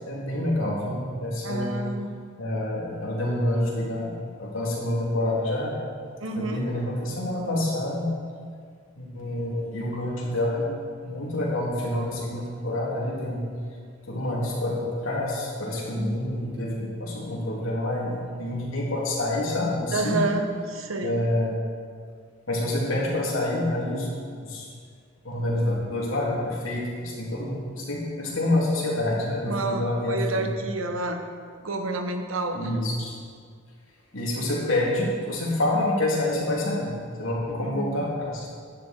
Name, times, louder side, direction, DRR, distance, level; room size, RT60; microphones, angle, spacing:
voice 1, 0.0-1.7 2.4-5.7 6.4-8.1 9.0-10.7 11.0-13.4 14.1-20.3 21.0-21.6 22.5-24.1 24.4-24.7 25.2-30.5 32.5-33.2 34.1-36.9 37.2-38.5, left 1 dB, 85° left, -4 dB, 3.1 m, -27 dB
voice 2, 1.4-2.1 6.2-6.6 15.9-16.1 19.9-21.2 29.5-31.2 31.6-32.7 37.6-37.9, right 2 dB, 90° right, 5 dB, 1.2 m, -29 dB
11.5 x 10.5 x 4.5 m, 2.1 s
head